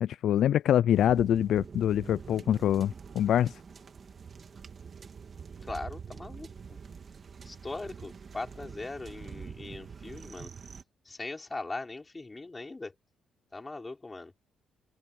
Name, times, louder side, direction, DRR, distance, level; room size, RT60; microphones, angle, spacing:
voice 1, 0.0-3.5, left 10 dB, 70° left, 0.3 m, -25 dB
sound 1, 0.9-10.8, right 6 dB, 45° right, 2.5 m, -45 dB
voice 2, 5.6-6.8 7.4-10.5 11.1-12.9 13.5-14.3, left 3 dB, 20° left, 5.4 m, -40 dB
open air
cardioid pair, 90°, 0 cm